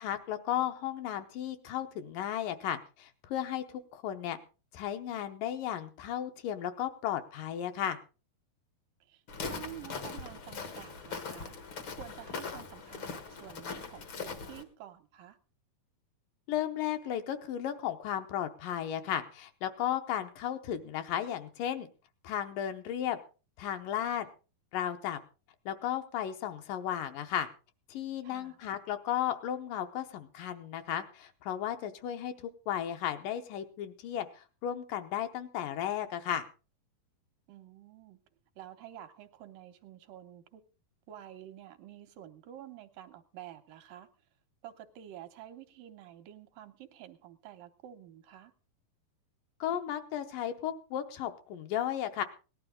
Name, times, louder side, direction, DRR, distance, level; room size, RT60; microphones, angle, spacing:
voice 1, 0.0-4.4 4.7-8.0 16.5-21.9 22.2-23.2 23.6-24.3 24.7-25.2 25.7-27.5 27.9-36.4 49.6-52.2, left 10 dB, 75° left, 7 dB, 2.4 m, -34 dB
voice 2, 9.1-11.5 12.0-15.4 28.2-28.6 37.5-38.2 38.6-40.6 41.1-44.1 44.6-48.5, right 12 dB, 75° right, 7 dB, 2.4 m, -49 dB
Walk footsteps, 9.3-14.6, left 5 dB, 60° left, 1.3 m, -41 dB
18.5 x 12.0 x 3.7 m, 0.33 s
omnidirectional pair, 4.1 m